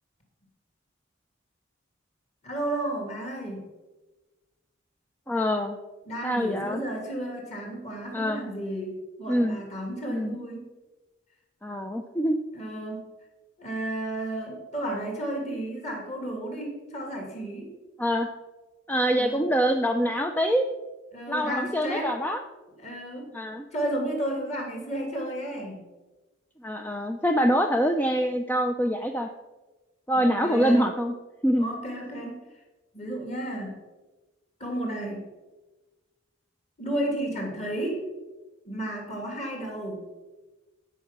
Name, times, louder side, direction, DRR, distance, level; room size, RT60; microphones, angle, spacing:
voice 1, 2.4-3.6 6.0-10.7 12.5-13.1 13.6-17.7 19.1-19.4 21.1-22.1 22.8-23.3 23.7-25.8 30.1-30.9 31.6-32.4 32.9-33.8 34.6-35.3 36.8-38.0 38.7-40.0, right 1 dB, 35° left, 1 dB, 2.9 m, -32 dB
voice 2, 5.3-5.8 6.2-6.8 8.1-8.4 9.3-9.6 10.1-10.4 11.6-12.4 18.0-18.3 18.9-20.7 21.3-22.4 23.3-23.6 26.6-29.3 30.1-31.1 31.4-31.7, equal, 10° left, 4 dB, 0.5 m, -25 dB
15.0 x 5.7 x 6.1 m, 1.2 s
head